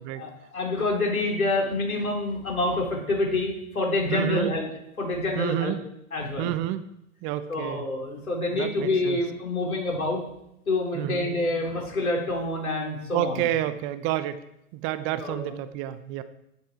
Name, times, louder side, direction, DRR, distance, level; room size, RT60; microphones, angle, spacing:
voice 1, 0.2-4.7 5.0-5.7 6.1-6.5 7.5-10.2 10.7-13.5 15.2-15.5, left 2 dB, 80° left, -1 dB, 4.6 m, -27 dB
voice 2, 4.1-4.5 5.4-5.8 6.4-6.8 7.2-7.9 8.5-9.2 10.9-11.3 13.1-14.4 14.7-16.2, right 12 dB, 30° right, 12 dB, 0.8 m, -29 dB
11.5 x 11.0 x 4.8 m, 0.82 s
figure-of-eight pair, 110°, 42 cm